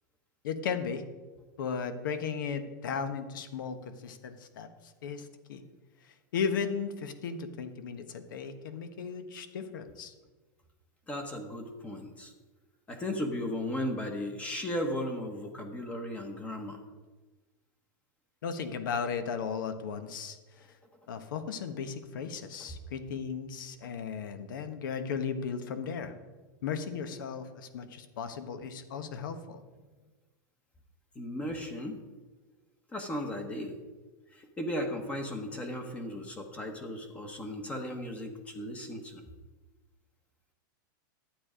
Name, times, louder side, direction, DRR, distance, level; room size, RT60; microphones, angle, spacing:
voice 1, 0.4-1.0 1.6-4.7 5.0-5.6 6.3-10.1 18.4-20.4 21.1-26.1 26.6-29.6, left 6 dB, 75° left, 9 dB, 1.3 m, -35 dB
voice 2, 11.1-12.3 12.9-16.8 31.1-32.0 32.9-33.8 34.3-39.2, left 1 dB, 10° left, 5 dB, 1.0 m, -36 dB
12.0 x 8.5 x 5.1 m, 1.2 s
supercardioid pair, 165°, 11 cm